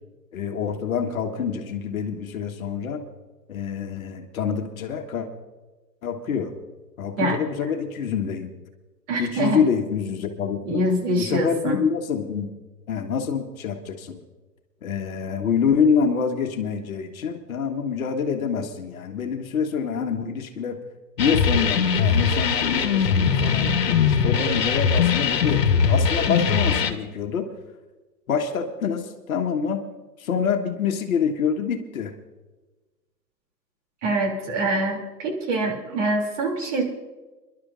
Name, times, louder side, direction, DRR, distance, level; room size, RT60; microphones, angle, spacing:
voice 1, 0.3-3.0 3.5-5.3 6.0-6.5 7.0-8.5 9.2-10.8 11.2-12.5 12.9-14.2 14.8-20.8 21.2-27.5 28.3-29.8 30.2-32.1, left 6 dB, 55° left, 5 dB, 1.4 m, -26 dB
voice 2, 9.1-9.6 10.7-11.8 34.0-36.8, right 1 dB, 45° right, 1 dB, 2.9 m, -24 dB
sound 1, 21.2-26.9, left 6 dB, 70° left, 1.3 m, -21 dB
28.0 x 11.5 x 2.5 m, 1.2 s
hypercardioid pair, 130°, 50 cm